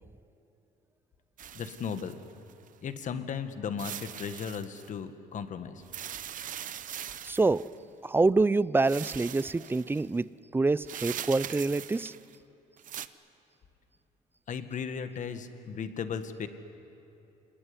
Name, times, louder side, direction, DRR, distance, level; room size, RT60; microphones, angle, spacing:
sound 1, 1.4-2.7 3.8-4.9 5.8-7.8 8.8-10.0 10.8-12.4 12.8-13.1, right 10 dB, 50° right, 0.9 m, -41 dB
voice 1, 1.5-2.2 2.8-5.8 14.5-16.5, left 6 dB, 50° left, 9 dB, 1.8 m, -36 dB
voice 2, 7.2-7.6 8.0-12.1, right 3 dB, 15° right, 19 dB, 0.5 m, -26 dB
26.5 x 19.5 x 9.9 m, 2.9 s
cardioid pair, 110°, 17 cm